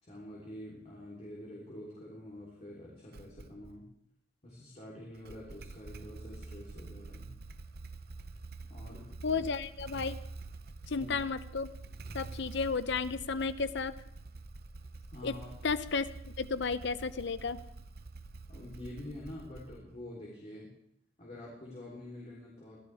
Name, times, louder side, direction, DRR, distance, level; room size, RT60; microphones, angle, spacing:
voice 1, 0.0-3.9 4.4-7.3 8.7-9.5 10.9-11.1 15.1-15.5 18.5-20.7 21.2-22.8, left 1 dB, 35° left, -5 dB, 3.5 m, -47 dB
Motorcycle / Engine starting, 3.1-3.8 5.1-20.0, right 3 dB, 50° right, 0.7 m, -47 dB
voice 2, 9.2-10.2 10.9-11.7 12.1-13.9 15.2-15.3 15.6-17.6, left 4 dB, 60° left, 13 dB, 0.7 m, -33 dB
23.5 x 15.0 x 3.5 m, 0.73 s
head